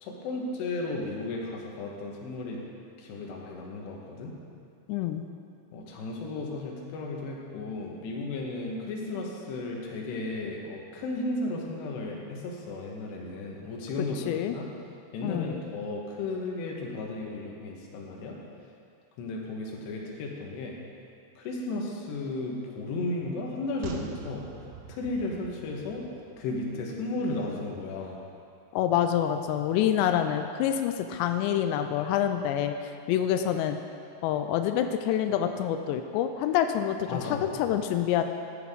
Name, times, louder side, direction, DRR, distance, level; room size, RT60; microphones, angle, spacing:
voice 1, 0.0-2.6 3.0-4.3 5.7-14.2 14.5-14.7 15.1-18.4 19.2-20.8 21.4-24.4 24.9-26.0 26.4-28.2 37.1-37.8, left 2 dB, 70° left, -1 dB, 3.2 m, -34 dB
voice 2, 4.9-5.3 14.3-14.6 15.2-15.6 28.7-32.7 33.1-33.8 34.2-38.2, left 10 dB, 90° left, 7 dB, 2.5 m, -27 dB
sound 1, 23.8-27.3 27.6-27.7, right 6 dB, 80° right, 2.5 m, -45 dB
14.0 x 10.0 x 3.7 m, 2.4 s
omnidirectional pair, 5.5 m